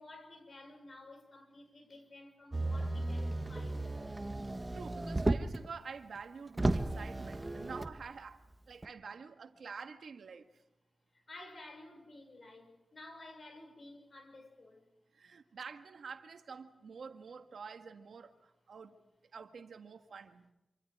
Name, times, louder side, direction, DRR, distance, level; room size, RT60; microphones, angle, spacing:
voice 1, 0.0-4.3 11.1-14.9, left 2 dB, 50° left, 5.7 m, -53 dB
Motor vehicle (road), 2.5-5.7 6.2-6.3 6.5-8.0 8.8-8.9, right 2 dB, 25° right, 1.4 m, -34 dB
voice 2, 4.7-8.4 8.7-10.5 15.1-19.0 19.3-20.5, right 5 dB, 85° right, 1.7 m, -48 dB
27.0 x 25.5 x 4.9 m
wide cardioid pair, 75°, 0 cm